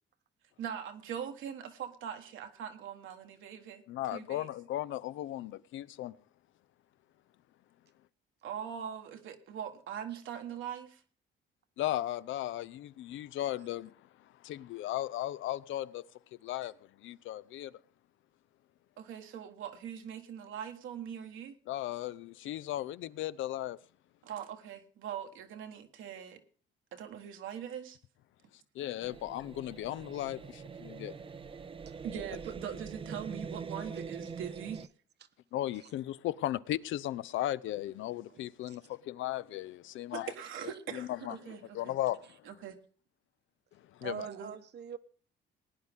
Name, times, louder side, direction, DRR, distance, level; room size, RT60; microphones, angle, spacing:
voice 1, 0.6-3.8 4.1-4.5 8.4-11.0 19.0-21.6 24.2-26.4 26.9-28.0 32.0-34.8 38.3-38.4 40.1-41.9 42.5-42.8 44.3-44.5, right 8 dB, 80° right, 1.4 m, -42 dB
voice 2, 3.9-6.1 11.8-13.9 14.4-16.1 16.4-16.7 17.0-17.7 21.7-23.8 28.7-31.3 35.5-40.3 40.9-42.4 43.9-44.3, left 14 dB, 80° left, 0.5 m, -36 dB
sound 1, 29.0-34.9, right 5 dB, 25° right, 0.5 m, -44 dB
voice 3, 44.0-45.0, right 8 dB, 60° right, 1.0 m, -43 dB
19.0 x 9.7 x 3.6 m
cardioid pair, 90°, 20 cm